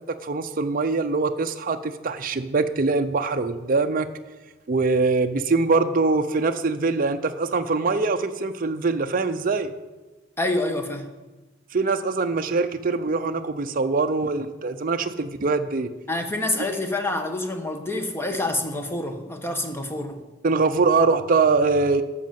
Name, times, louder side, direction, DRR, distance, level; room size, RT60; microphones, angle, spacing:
voice 1, 0.1-4.1 4.7-9.7 11.7-15.9 20.4-22.0, right 3 dB, 45° right, 7 dB, 0.6 m, -23 dB
voice 2, 10.4-11.1 16.1-20.2, left 2 dB, 10° left, 5 dB, 1.1 m, -27 dB
12.5 x 6.5 x 7.5 m, 1.2 s
head